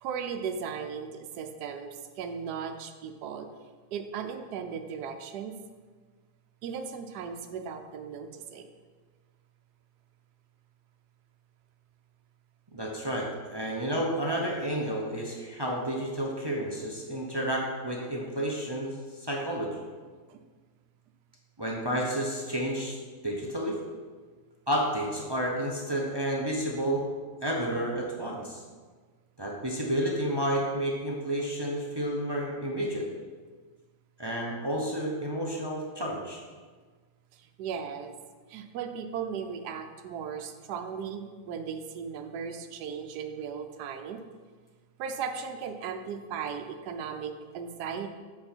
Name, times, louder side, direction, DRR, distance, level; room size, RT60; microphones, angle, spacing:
voice 1, 0.0-3.5 3.9-5.5 6.6-8.7 20.3-20.4 37.3-38.1 38.5-44.2 45.0-48.1, right 6 dB, 80° right, 6 dB, 1.2 m, -37 dB
voice 2, 12.7-19.8 21.6-23.0 23.2-23.8 24.7-27.0 27.4-28.6 29.4-33.1 34.2-36.4, right 1 dB, 25° right, -2 dB, 0.5 m, -31 dB
7.9 x 4.8 x 4.4 m, 1.4 s
omnidirectional pair, 1.7 m